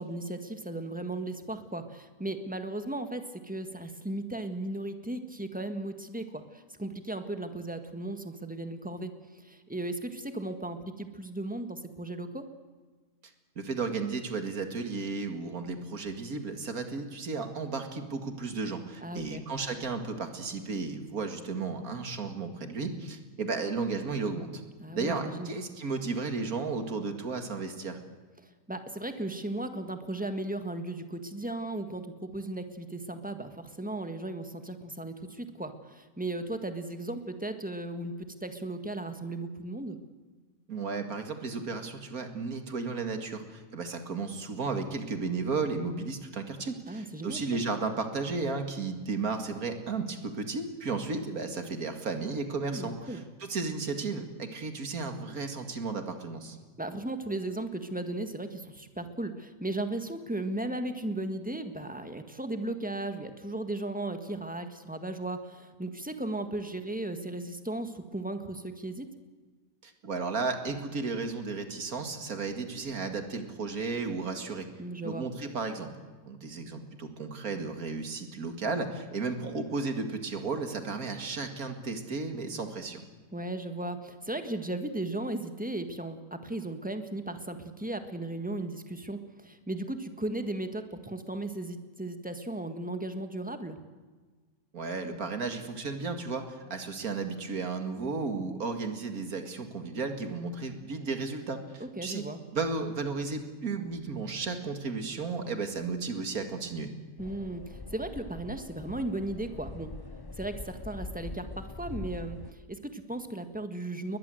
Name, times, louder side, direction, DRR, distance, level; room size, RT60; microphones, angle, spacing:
voice 1, 0.0-12.5 19.0-19.4 24.8-25.5 28.4-40.0 46.9-47.6 52.6-53.2 56.8-69.1 74.8-75.3 83.3-93.8 101.8-102.4 107.2-109.9 110.4-114.2, right 2 dB, 5° right, 7 dB, 1.6 m, -36 dB
voice 2, 13.6-24.6 24.9-28.0 40.7-56.6 69.8-74.7 75.0-75.9 76.3-83.0 94.7-102.2 102.5-106.9, right 4 dB, 70° right, 6 dB, 2.6 m, -34 dB
sound 1, 107.2-112.5, left 3 dB, 20° left, 0.7 m, -43 dB
21.0 x 21.0 x 7.9 m, 1.4 s
omnidirectional pair, 1.6 m